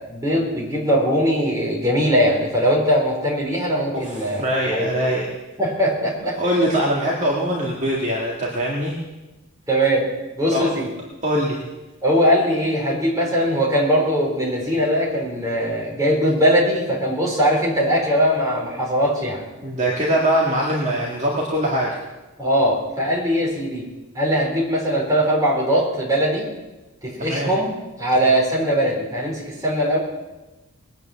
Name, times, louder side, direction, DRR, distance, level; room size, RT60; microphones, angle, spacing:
voice 1, 0.0-4.4 4.7-4.9 5.6-6.4 9.7-10.1 10.4-10.9 12.0-19.4 22.4-23.9 24.1-26.5 27.0-30.0, equal, 15° right, -3 dB, 4.2 m, -20 dB
voice 2, 3.9-5.3 6.4-9.0 10.5-10.7 11.2-11.6 19.6-22.0 27.2-27.5, equal, 30° right, -3 dB, 2.0 m, -22 dB
21.0 x 9.2 x 7.2 m, 1.1 s
head